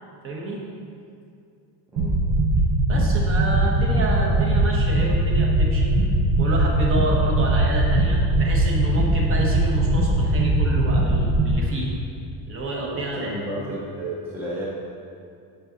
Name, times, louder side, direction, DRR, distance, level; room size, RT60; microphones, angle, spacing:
voice 1, 0.2-0.6 2.9-6.0 6.4-11.9 12.5-13.4, right 2 dB, 30° right, -2 dB, 1.0 m, -29 dB
sound 1, 2.0-11.5, right 1 dB, 60° right, 1.1 m, -20 dB
voice 2, 12.9-14.6, right 1 dB, 5° right, -7 dB, 0.7 m, -32 dB
7.8 x 3.9 x 5.5 m, 2.4 s
cardioid pair, 175°, 42 cm